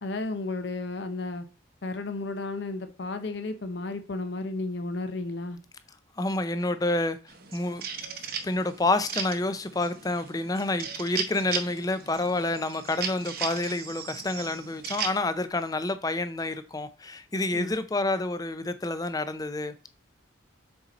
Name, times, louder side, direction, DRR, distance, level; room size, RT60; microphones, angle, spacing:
voice 1, 0.0-1.5 1.8-5.6 17.5-17.7, left 2 dB, 60° left, 0.6 m, -33 dB
voice 2, 6.2-7.2 7.5-7.8 8.4-19.9, left 2 dB, 20° left, 0.4 m, -28 dB
sound 1, 7.3-15.2, right 6 dB, 50° right, 0.8 m, -37 dB
6.5 x 4.2 x 4.1 m
head